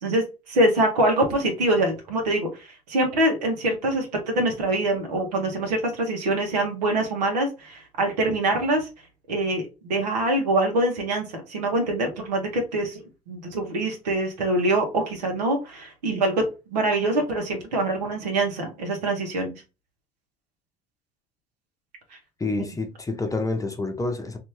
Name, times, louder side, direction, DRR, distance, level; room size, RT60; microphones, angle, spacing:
voice 1, 0.0-8.9 9.3-19.5, right 1 dB, 85° right, 1.0 m, -24 dB
voice 2, 22.4-24.4, left 2 dB, 15° left, 0.8 m, -28 dB
2.7 x 2.6 x 3.1 m
hypercardioid pair, 60°, 20 cm